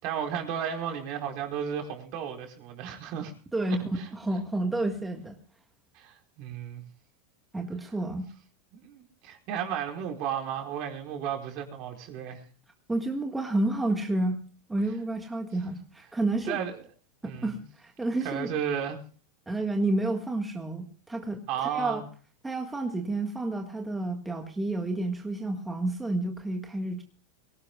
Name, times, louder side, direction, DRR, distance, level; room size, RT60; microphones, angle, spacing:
voice 1, 0.0-3.3 4.0-4.1 5.9-6.8 8.7-12.4 16.4-16.9 17.2-17.5 18.2-19.0 21.5-22.1, right 8 dB, 50° right, 4.5 m, -33 dB
voice 2, 3.5-5.4 7.5-8.3 12.9-14.4 14.7-16.6 17.2-18.5 19.5-22.0 22.4-27.0, right 2 dB, 10° right, 1.7 m, -30 dB
23.5 x 17.5 x 2.4 m
supercardioid pair, 130°, 0 cm